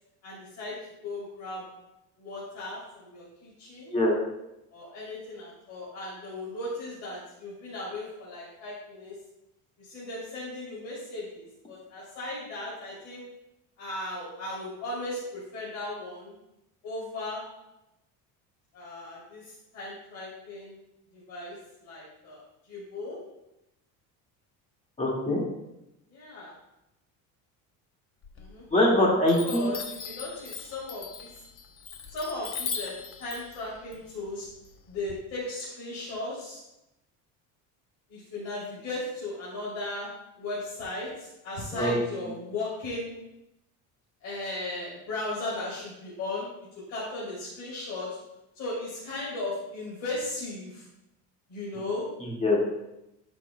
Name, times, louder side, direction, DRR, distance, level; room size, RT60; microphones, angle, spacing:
voice 1, 0.2-0.8 1.0-1.7 2.2-3.9 4.7-9.2 9.8-13.2 13.8-16.4 16.8-17.4 18.7-20.8 21.1-23.2 26.1-26.5 28.4-28.7 29.4-31.4 32.1-34.5 34.9-36.6 38.1-40.1 40.4-43.1 44.2-46.5 46.9-48.2 48.5-50.9 51.5-52.1, left 2 dB, 55° left, -7 dB, 3.0 m, -36 dB
voice 2, 25.0-25.4 28.7-29.7 41.7-42.0 52.4-52.6, left 1 dB, 20° left, -3 dB, 2.0 m, -23 dB
Chime, 28.2-28.9 29.3-35.1, left 6 dB, 35° left, 0.8 m, -39 dB
13.0 x 6.1 x 2.2 m, 0.90 s
cardioid pair, 155°, 36 cm